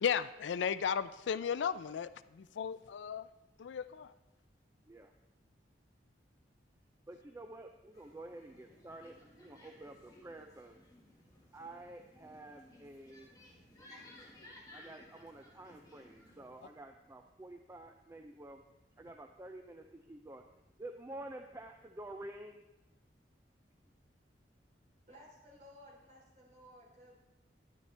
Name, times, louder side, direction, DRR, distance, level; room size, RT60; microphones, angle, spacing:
voice 1, 0.0-3.3 3.6-4.1, left 7 dB, 80° left, 15 dB, 0.4 m, -35 dB
voice 2, 7.1-10.8 11.5-13.3 14.7-18.6 19.0-20.4 20.8-22.6, right 1 dB, 15° right, 5 dB, 0.4 m, -49 dB
sound 1, 7.9-16.7, left 1 dB, 20° left, 1.7 m, -58 dB
voice 3, 25.1-27.2, equal, 40° right, -5 dB, 3.5 m, -57 dB
10.5 x 9.8 x 3.3 m, 0.98 s
head